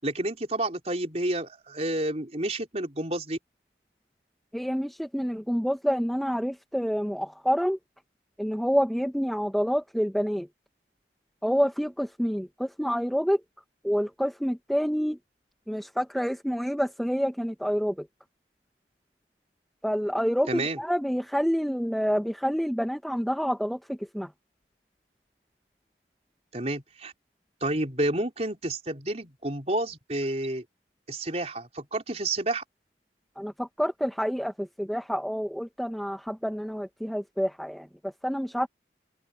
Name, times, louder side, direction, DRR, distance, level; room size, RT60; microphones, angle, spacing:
voice 1, 0.0-3.4 20.5-20.8 26.5-27.1 27.6-30.6 31.1-32.6, right 1 dB, 35° right, 4.5 m, -30 dB
voice 2, 4.5-7.8 8.4-10.5 11.4-13.4 13.8-15.2 15.7-18.1 19.8-24.3 33.4-38.7, equal, ahead, 1.7 m, -28 dB
open air
head